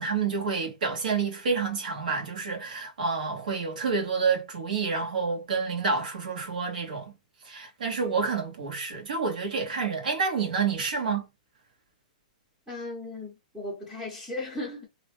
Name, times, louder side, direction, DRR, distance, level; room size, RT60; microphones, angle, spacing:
voice 1, 0.0-7.1 7.4-11.2, right 5 dB, 90° right, 1.3 m, -28 dB
voice 2, 12.7-14.9, left 2 dB, 5° right, 0.7 m, -36 dB
2.8 x 2.2 x 3.0 m
hypercardioid pair, 175°, 4 cm